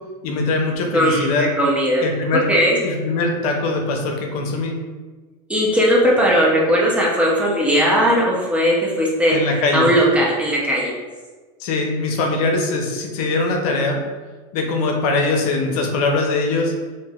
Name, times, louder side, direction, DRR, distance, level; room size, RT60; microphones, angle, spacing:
voice 1, 0.2-1.5 2.0-2.4 2.8-4.7 9.3-9.9 11.6-14.0 14.5-16.7, left 3 dB, 75° left, 2 dB, 0.6 m, -21 dB
voice 2, 0.9-2.0 2.5-2.8 5.5-10.9, equal, 5° right, -4 dB, 0.5 m, -18 dB
3.2 x 2.6 x 2.3 m, 1.3 s
supercardioid pair, 130°, 19 cm